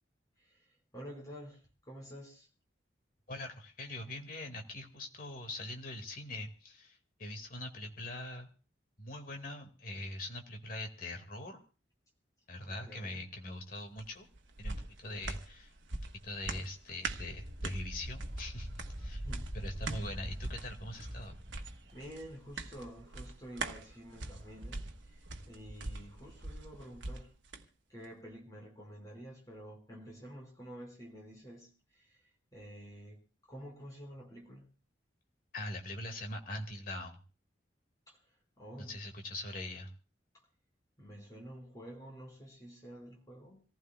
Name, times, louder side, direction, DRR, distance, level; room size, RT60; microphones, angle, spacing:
voice 1, 0.4-2.5 12.6-13.2 19.2-19.5 21.9-27.3 27.9-32.2 32.5-33.2 33.5-34.7 38.1-38.2 38.6-39.0 41.0-43.6, equal, 20° left, 0 dB, 4.8 m, -49 dB
voice 2, 3.3-8.5 9.0-11.6 12.5-14.3 14.6-15.7 16.2-19.2 19.5-21.4 35.5-37.2 38.8-39.9, left 1 dB, 50° left, 4 dB, 2.0 m, -42 dB
sound 1, 14.0-27.6 28.0-28.1, right 3 dB, 80° right, 1.2 m, -43 dB
sound 2, 17.1-22.0, equal, 40° right, 3.1 m, -43 dB
27.0 x 15.0 x 2.3 m, 0.34 s
head